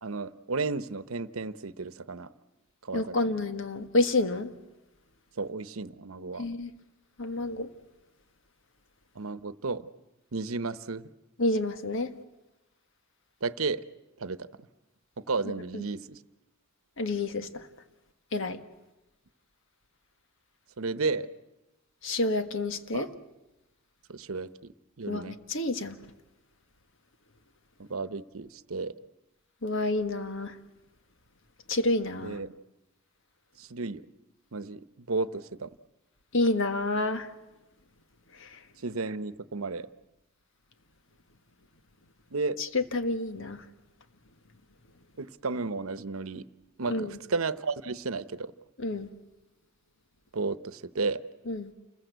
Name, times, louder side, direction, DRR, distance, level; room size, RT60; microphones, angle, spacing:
voice 1, 0.0-2.3 2.8-3.4 5.4-6.5 9.1-9.9 10.3-11.1 13.4-13.8 14.2-14.5 15.2-16.1 20.8-21.3 22.9-23.1 24.1-25.4 27.8-28.9 32.2-32.6 33.6-34.0 34.5-35.7 38.8-39.9 42.3-42.6 45.2-46.5 46.8-48.5 50.3-51.2, right 3 dB, 80° right, 0.9 m, -33 dB
voice 2, 2.9-4.5 6.4-6.7 7.2-7.7 11.4-12.1 15.7-15.8 17.0-17.6 18.3-18.6 22.0-23.1 25.1-26.0 29.6-30.5 31.7-32.4 36.3-37.3 38.4-38.5 42.6-43.6 46.9-47.1 48.8-49.1 51.5-51.7, left 2 dB, 65° left, 1.6 m, -29 dB
29.0 x 21.0 x 8.1 m
head